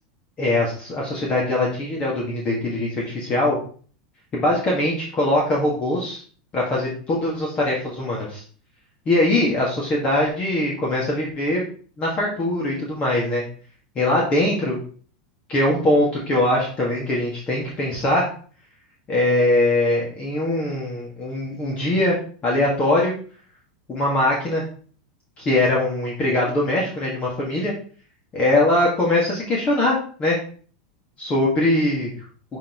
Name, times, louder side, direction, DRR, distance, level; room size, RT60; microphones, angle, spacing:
voice 1, 0.4-3.6 4.3-6.2 6.5-8.4 9.1-11.6 12.0-13.4 14.0-14.8 15.5-18.3 19.1-22.2 22.4-23.1 23.9-24.6 25.4-27.7 28.3-30.4 31.2-32.1, left 1 dB, 30° left, -3 dB, 1.9 m, -21 dB
8.1 x 4.1 x 3.1 m, 0.43 s
supercardioid pair, 135°, 4 cm